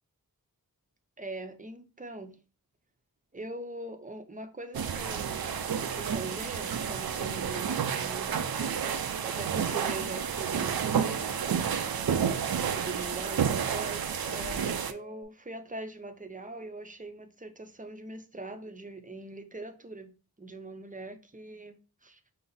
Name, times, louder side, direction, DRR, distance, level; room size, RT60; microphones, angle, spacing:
voice 1, 1.2-2.4 3.3-8.3 8.8-11.8 12.6-20.1 20.4-21.8 22.0-22.2, right 2 dB, 20° right, 0.6 m, -42 dB
sound 1, 4.7-14.9, right 7 dB, 65° right, 0.5 m, -30 dB
sound 2, 5.4-6.2 6.8-7.5 8.3-9.0 9.6-10.3 10.9-15.2, left 10 dB, 75° left, 0.5 m, -50 dB
5.5 x 2.0 x 3.8 m
wide cardioid pair, 60°, 38 cm